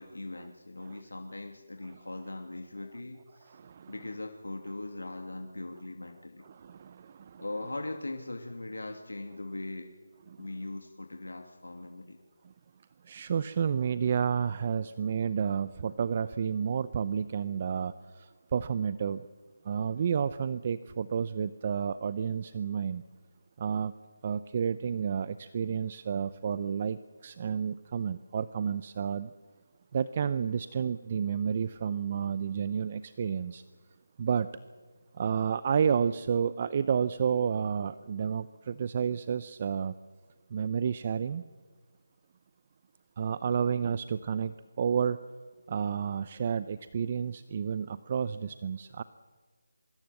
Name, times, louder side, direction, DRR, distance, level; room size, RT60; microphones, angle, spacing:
voice 1, 0.0-3.6 3.9-6.5 7.4-9.9 10.4-12.2, left 2 dB, 90° left, 4 dB, 2.6 m, -40 dB
voice 2, 3.5-3.9 6.4-7.4 10.3-10.5 13.0-19.3 19.6-23.0 23.6-23.9 24.2-29.3 29.9-33.6 34.2-34.5 35.1-39.9 40.5-41.4 43.2-45.2 45.7-49.0, right 7 dB, 30° right, 15 dB, 0.6 m, -31 dB
24.0 x 22.5 x 7.8 m, 1.5 s
figure-of-eight pair, 165°, 0 cm